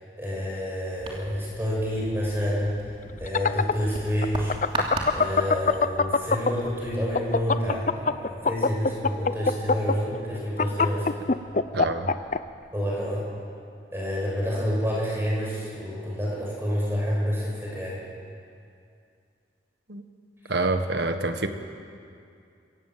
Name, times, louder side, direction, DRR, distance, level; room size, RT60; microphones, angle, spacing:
voice 1, 0.2-2.7 3.2-4.5 5.1-11.2 12.7-13.3 13.9-18.0 20.4-20.5, equal, 15° right, -4 dB, 6.4 m, -28 dB
sound 1, 1.0-7.5, right 2 dB, 30° right, 2.8 m, -38 dB
sound 2, 3.1-6.7 7.0-12.4, left 4 dB, 45° left, 0.6 m, -22 dB
voice 2, 11.7-12.1 19.9-20.0 20.5-21.5, right 2 dB, 70° right, 7 dB, 1.5 m, -26 dB
25.0 x 17.0 x 7.6 m, 2.4 s
head